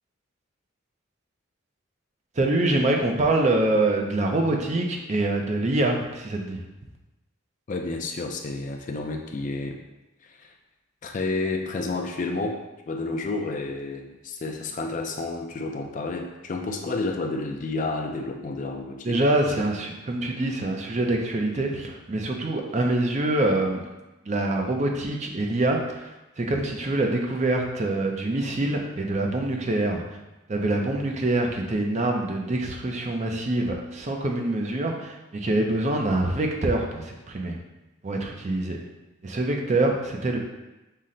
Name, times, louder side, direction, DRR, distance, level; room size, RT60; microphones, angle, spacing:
voice 1, 2.4-6.6 19.0-23.8 24.2-30.0 30.5-37.6 38.0-38.8 39.2-40.4, right 2 dB, 35° right, 2 dB, 0.5 m, -25 dB
voice 2, 7.7-9.8 10.2-10.5 11.0-19.2 19.6-19.7, left 3 dB, 35° left, 3 dB, 0.4 m, -30 dB
5.6 x 2.1 x 3.7 m, 1.0 s
head